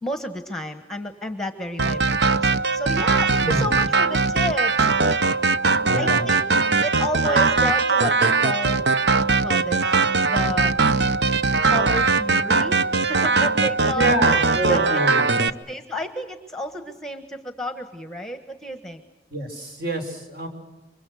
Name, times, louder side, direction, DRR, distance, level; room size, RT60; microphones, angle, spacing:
voice 1, 0.0-5.3 6.0-6.4 6.7-8.9 9.2-9.8 10.2-10.8 11.7-12.8 13.0-15.0 15.4-19.0, equal, 5° left, 8 dB, 1.3 m, -31 dB
sound 1, 1.8-15.5, right 4 dB, 75° right, 0.8 m, -20 dB
voice 2, 3.4-3.7 5.9-6.3 13.9-15.5 19.3-20.5, right 1 dB, 55° right, 4 dB, 5.4 m, -26 dB
28.5 x 24.5 x 6.4 m, 1.1 s
head